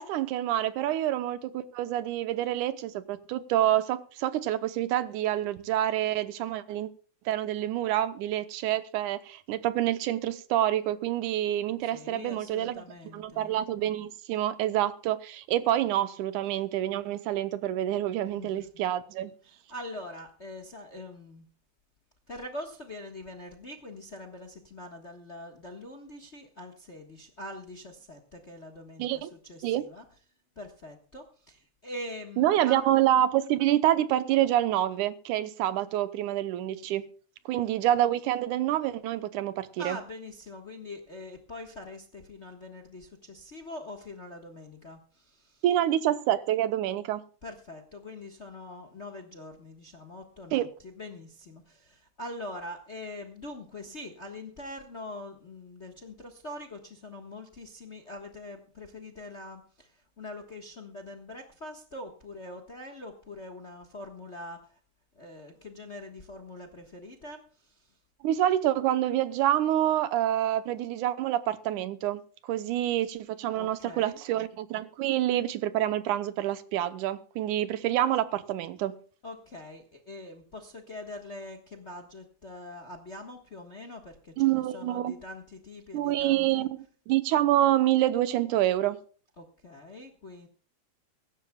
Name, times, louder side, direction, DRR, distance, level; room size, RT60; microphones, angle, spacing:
voice 1, 0.0-6.9 7.3-12.8 13.1-19.3 29.0-29.3 29.6-29.9 32.4-37.1 37.5-40.0 45.6-47.2 50.5-50.7 68.2-78.9 84.4-85.1 85.9-86.8 87.1-89.0, right 12 dB, 85° right, 2.3 m, -27 dB
voice 2, 11.8-13.6 18.3-18.7 19.4-21.4 22.3-30.0 30.5-32.8 39.8-45.6 47.4-64.8 65.1-68.0 73.6-74.2 79.2-86.7 89.4-90.5, left 1 dB, 40° left, 1.0 m, -43 dB
23.5 x 12.0 x 2.3 m
omnidirectional pair, 3.5 m